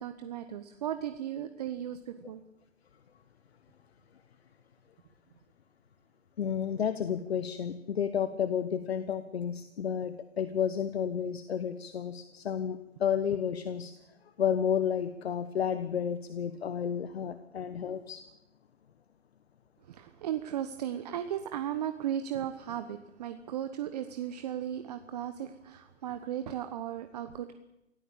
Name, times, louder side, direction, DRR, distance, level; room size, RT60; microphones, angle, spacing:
voice 1, 0.0-2.4 19.9-27.6, right 10 dB, 35° right, 10 dB, 1.2 m, -36 dB
voice 2, 6.4-13.9 14.4-18.2, left 8 dB, 55° left, 11 dB, 1.5 m, -31 dB
24.5 x 16.5 x 8.8 m, 0.90 s
hypercardioid pair, 145°, 37 cm